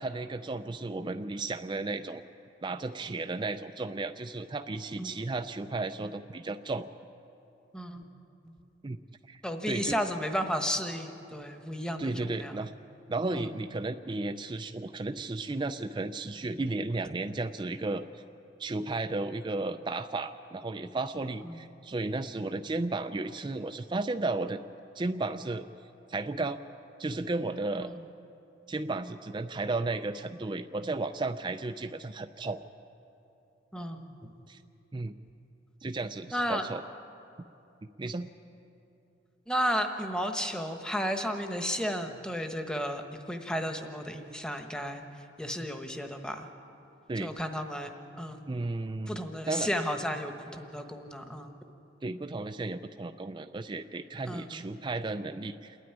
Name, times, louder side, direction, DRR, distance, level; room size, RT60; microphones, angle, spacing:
voice 1, 0.0-2.2 2.6-6.9 8.8-9.0 9.3-9.4 9.7-10.0 12.0-12.7 13.1-18.2 18.6-24.6 25.0-25.7 26.1-26.6 27.0-27.9 28.7-32.6 34.5-34.6 34.9-35.1 35.8-36.8 38.0-38.3 47.1-47.3 48.5-49.2 49.5-49.7 52.0-55.8, right 2 dB, 25° right, 8 dB, 0.4 m, -34 dB
voice 2, 7.7-8.0 8.4-8.5 9.4-12.6 13.3-13.5 21.4-21.6 27.8-27.9 33.7-34.3 36.3-36.6 39.5-45.0 45.4-46.5 47.2-47.9 48.2-48.4 49.1-51.5 54.3-54.5, equal, 5° left, 5 dB, 1.1 m, -33 dB
28.0 x 9.4 x 9.9 m, 2.8 s
head